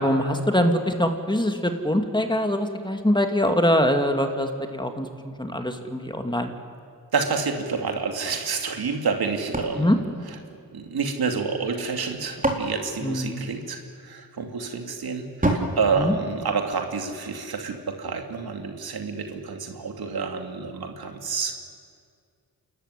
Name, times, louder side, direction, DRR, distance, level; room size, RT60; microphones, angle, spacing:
voice 1, 0.0-5.1 5.4-6.5 9.8-10.0 13.0-13.5 16.0-16.1, equal, 10° left, 5 dB, 2.3 m, -23 dB
voice 2, 7.1-9.9 10.5-21.6, right 5 dB, 70° right, 4 dB, 2.5 m, -28 dB
sound 1, 9.5-11.1 11.9-13.9 15.4-17.0, right 1 dB, 20° right, 4.0 m, -30 dB
28.0 x 13.5 x 9.9 m, 2.2 s
cardioid pair, 55°, 39 cm